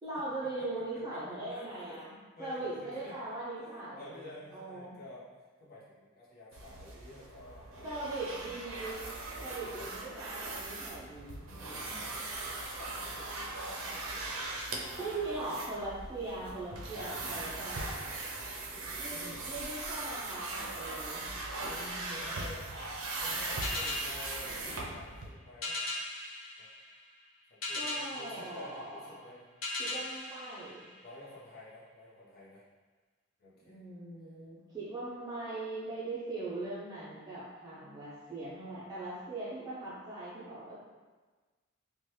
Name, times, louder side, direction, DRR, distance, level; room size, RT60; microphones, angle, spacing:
voice 1, 0.0-4.9 7.8-9.0 9.4-12.0 15.0-17.8 19.0-21.3 27.7-29.1 29.8-30.9 33.6-40.7, right 2 dB, 20° right, -10 dB, 0.4 m, -40 dB
voice 2, 1.5-5.3 5.6-8.3 8.7-9.0 9.3-9.9 11.6-15.2 16.9-17.2 19.1-19.5 21.7-22.6 23.2-24.6 24.9-25.8 26.6-26.7 27.5-29.5 31.0-32.6 33.4-33.9, left 1 dB, 45° left, -7 dB, 0.7 m, -51 dB
sound 1, 6.5-25.3, right 2 dB, 70° right, 0.5 m, -39 dB
sound 2, 23.6-31.5, left 2 dB, 80° left, 0.6 m, -40 dB
2.9 x 2.2 x 3.1 m, 1.4 s
head